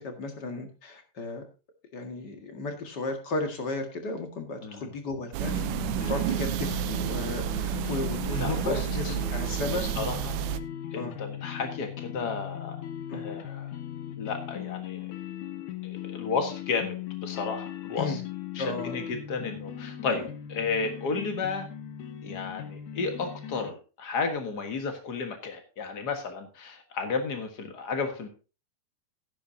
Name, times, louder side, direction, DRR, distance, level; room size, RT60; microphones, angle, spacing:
voice 1, 0.0-1.4 1.9-5.7 6.1-9.9 11.0-11.2 13.1-13.2 18.0-18.2 18.6-19.0 20.1-20.2, left 3 dB, 40° left, 5 dB, 1.7 m, -34 dB
voice 2, 4.6-4.9 7.8-8.0 8.4-9.1 9.7-10.4 10.9-12.8 13.1-13.7 14.2-15.1 15.8-18.2 18.5-20.2 20.5-21.7 22.2-28.3, left 4 dB, 80° left, 5 dB, 0.9 m, -33 dB
sound 1, 5.3-10.6, right 13 dB, 85° right, 2.6 m, -30 dB
sound 2, 5.4-23.7, left 11 dB, 65° left, 2.3 m, -38 dB
14.0 x 11.0 x 2.7 m, 0.32 s
omnidirectional pair, 4.4 m